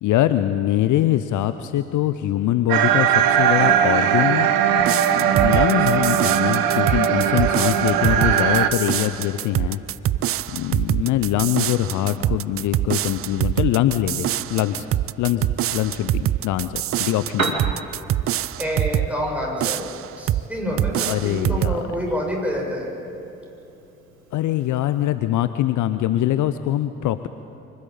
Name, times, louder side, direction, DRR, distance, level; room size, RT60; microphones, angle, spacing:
voice 1, 0.0-4.5 5.1-9.8 10.2-14.9 15.2-17.6 21.1-21.8 24.3-27.3, left 13 dB, 50° left, 12 dB, 0.7 m, -23 dB
sound 1, 2.7-8.7, right 9 dB, 55° right, 1.3 m, -19 dB
sound 2, 4.8-19.1 19.6-20.5 20.8-21.8, right 12 dB, 35° right, 0.5 m, -25 dB
Piano, 17.1-25.1, right 3 dB, 90° right, 1.1 m, -36 dB
voice 2, 18.6-19.9 20.2-22.9, equal, 5° right, -2 dB, 6.5 m, -27 dB
24.5 x 13.0 x 8.7 m, 2.8 s
figure-of-eight pair, 45°, 40 cm